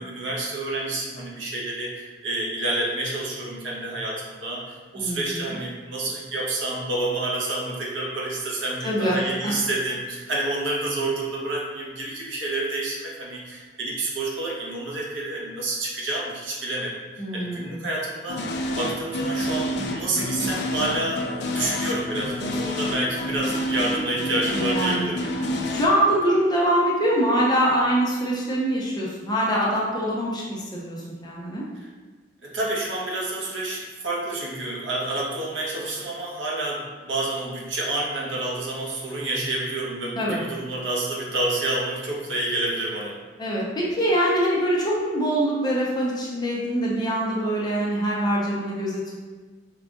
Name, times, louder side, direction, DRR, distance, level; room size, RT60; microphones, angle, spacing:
voice 1, 0.0-25.2 32.4-43.2, right 2 dB, 75° right, -4 dB, 1.0 m, -29 dB
voice 2, 5.0-5.5 8.8-9.2 17.2-17.7 24.5-25.1 25.7-31.6 40.2-40.4 43.4-49.1, right 1 dB, 20° left, -5 dB, 0.8 m, -24 dB
sound 1, 18.3-25.9, equal, 60° left, 0.5 m, -28 dB
4.8 x 2.5 x 3.6 m, 1.4 s
head